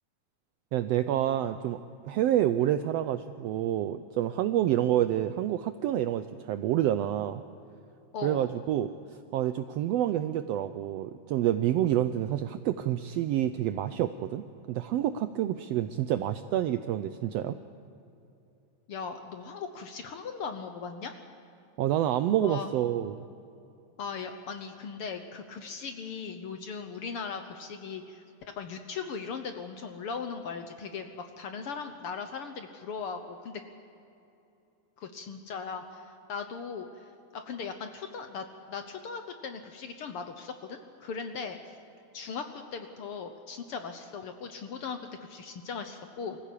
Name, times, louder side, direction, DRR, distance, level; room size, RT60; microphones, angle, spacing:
voice 1, 0.7-7.4 8.2-8.9 9.3-17.6 21.8-23.2, right 12 dB, 80° right, 10 dB, 1.4 m, -28 dB
voice 2, 18.9-21.1 22.4-22.7 24.0-28.2 28.6-33.6 35.0-37.0 37.3-41.7 42.1-46.4, left 5 dB, 60° left, 7 dB, 1.6 m, -38 dB
24.0 x 15.0 x 8.4 m, 2.7 s
omnidirectional pair, 3.4 m